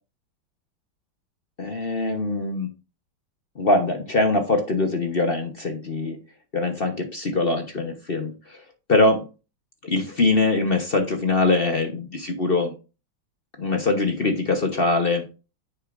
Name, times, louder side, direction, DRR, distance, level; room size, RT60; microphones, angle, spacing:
voice 1, 1.6-2.7 3.6-6.2 6.5-8.6 8.9-9.3 9.8-12.7 13.6-15.2, left 2 dB, 40° left, 5 dB, 0.9 m, -23 dB
9.4 x 6.8 x 2.5 m, 0.31 s
omnidirectional pair, 2.2 m